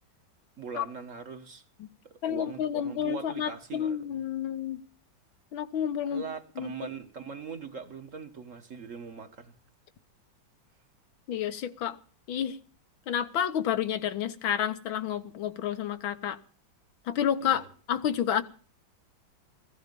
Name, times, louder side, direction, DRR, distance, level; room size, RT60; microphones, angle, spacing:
voice 1, 0.6-1.6 2.0-4.0 6.1-9.6 17.4-17.7, right 5 dB, 45° right, 1.4 m, -41 dB
voice 2, 2.2-4.8 5.5-6.2 6.6-6.7 11.3-12.0 12.3-12.6 13.1-16.4 17.1-18.4, left 9 dB, 90° left, 1.9 m, -30 dB
15.5 x 15.0 x 5.2 m
omnidirectional pair, 2.1 m